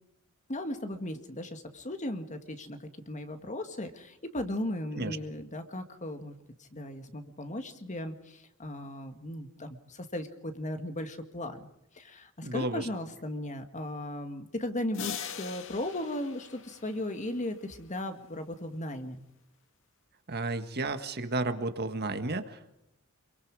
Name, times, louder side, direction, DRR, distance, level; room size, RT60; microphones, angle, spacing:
voice 1, 0.5-11.7 11.9-19.2, left 1 dB, 35° left, 7 dB, 2.0 m, -37 dB
voice 2, 12.4-12.9 20.3-22.7, right 2 dB, 50° right, 9 dB, 1.7 m, -32 dB
sound 1, 14.9-17.7, left 7 dB, 65° left, 2.0 m, -41 dB
27.0 x 23.5 x 4.9 m, 0.84 s
head